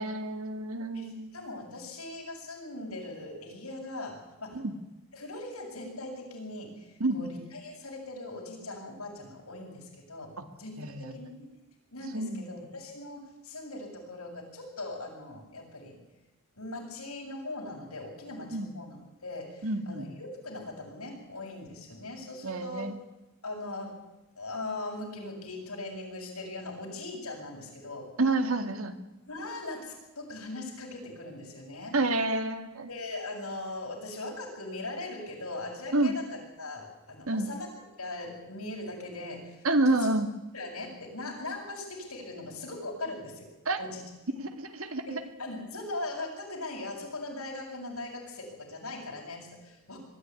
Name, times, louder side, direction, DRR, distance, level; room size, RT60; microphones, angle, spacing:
voice 1, 0.0-1.3 4.5-4.7 7.0-7.3 10.4-10.5 10.8-11.2 12.1-12.6 18.5-18.7 19.6-20.1 22.4-23.0 28.2-28.9 31.9-32.9 35.9-36.2 37.3-37.5 39.6-40.3 43.7-43.8 44.4-45.2, right 2 dB, 70° right, 8 dB, 2.1 m, -29 dB
voice 2, 0.9-4.6 5.1-10.3 10.6-10.8 11.1-11.5 11.9-16.0 16.6-22.9 23.4-24.0 24.4-28.1 29.2-32.0 32.9-37.7 38.0-39.6 39.9-40.1 40.5-43.5 43.8-44.3 45.1-50.0, left 2 dB, 90° left, -1 dB, 7.8 m, -40 dB
22.0 x 13.5 x 9.7 m, 1.0 s
head